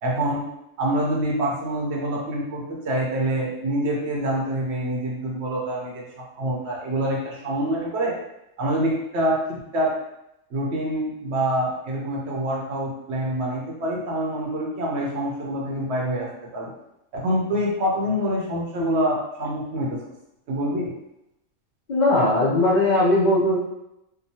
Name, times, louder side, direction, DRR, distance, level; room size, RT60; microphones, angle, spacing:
voice 1, 0.0-0.4 0.8-6.0 6.3-8.1 8.6-9.4 9.7-9.9 10.5-16.3 16.5-16.7 17.1-20.0 20.5-20.9, right 1 dB, 60° right, -3 dB, 0.8 m, -26 dB
voice 2, 21.9-23.6, left 2 dB, 60° left, -7 dB, 0.4 m, -19 dB
2.9 x 2.2 x 2.6 m, 0.84 s
omnidirectional pair, 1.4 m